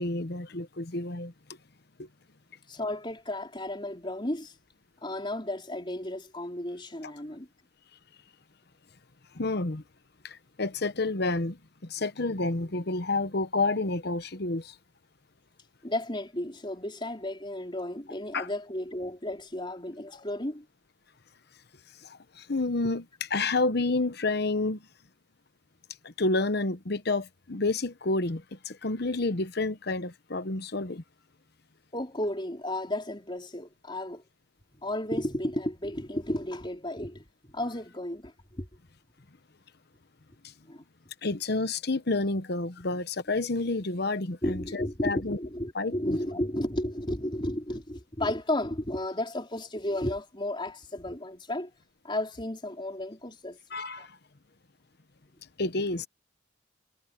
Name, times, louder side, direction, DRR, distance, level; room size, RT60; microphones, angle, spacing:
voice 1, 0.0-1.3 2.0-2.1 9.3-9.8 10.2-14.7 18.3-18.5 22.0-24.8 26.0-31.0 41.2-45.4 45.7-46.2 53.7-54.2 55.6-56.1, left 2 dB, 55° left, 1.1 m, -29 dB
voice 2, 2.7-4.5 5.0-7.5 15.8-20.7 31.9-34.2 34.8-38.7 40.7-40.8 44.4-51.7 52.0-53.6 54.0-54.1, left 1 dB, 25° left, 4.6 m, -33 dB
head